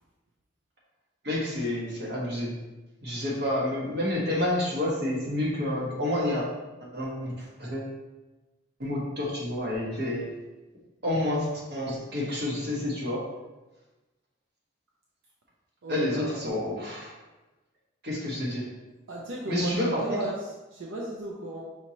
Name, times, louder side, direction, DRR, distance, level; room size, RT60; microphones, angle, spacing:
voice 1, 1.2-2.6 3.0-6.4 6.8-7.9 8.8-10.3 11.0-13.3 15.9-17.2 18.0-18.7 19.5-20.2, left 1 dB, 55° right, -5 dB, 1.3 m, -29 dB
voice 2, 15.8-16.3 19.1-20.3 20.7-21.6, right 2 dB, 85° right, -3 dB, 0.6 m, -36 dB
5.6 x 3.0 x 2.9 m, 1.1 s
head